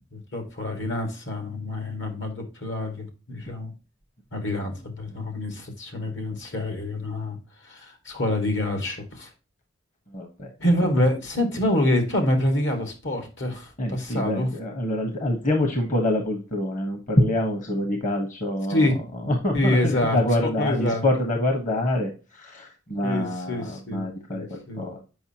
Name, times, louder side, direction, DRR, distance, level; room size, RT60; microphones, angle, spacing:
voice 1, 0.1-3.7 4.3-9.3 10.6-14.5 18.7-20.2 20.4-21.1 23.0-24.8, left 1 dB, 70° left, 5 dB, 2.0 m, -26 dB
voice 2, 10.1-10.5 13.8-18.9 19.3-25.0, left 1 dB, 45° left, 3 dB, 1.3 m, -26 dB
7.8 x 5.4 x 2.9 m, 0.31 s
head